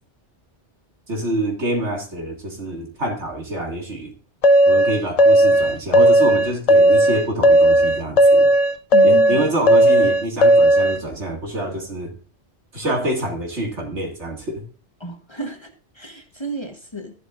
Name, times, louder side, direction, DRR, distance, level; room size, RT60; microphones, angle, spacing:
voice 1, 1.1-4.1 4.7-8.5 9.0-12.1 12.7-14.6, right 1 dB, 75° right, 1 dB, 2.4 m, -26 dB
sound 1, 4.4-11.0, right 1 dB, 45° left, 0.5 m, -14 dB
voice 2, 8.9-9.5 15.0-17.1, equal, 25° left, 4 dB, 1.1 m, -32 dB
12.5 x 11.0 x 2.5 m, 0.37 s
omnidirectional pair, 1.2 m